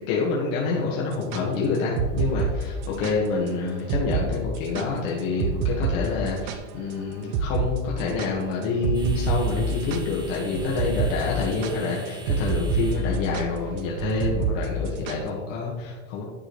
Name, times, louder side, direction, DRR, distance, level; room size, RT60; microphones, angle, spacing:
voice 1, 0.1-16.2, left 4 dB, 70° left, -4 dB, 1.7 m, -27 dB
sound 1, 1.1-3.2 3.5-3.6 3.9-4.3 4.5-6.9 7.3-7.7 8.0-15.3, right 5 dB, 50° right, 0.8 m, -27 dB
sound 2, 4.3-15.1, right 2 dB, 10° right, 0.6 m, -49 dB
11.0 x 5.0 x 3.2 m, 1.4 s
supercardioid pair, 135°, 41 cm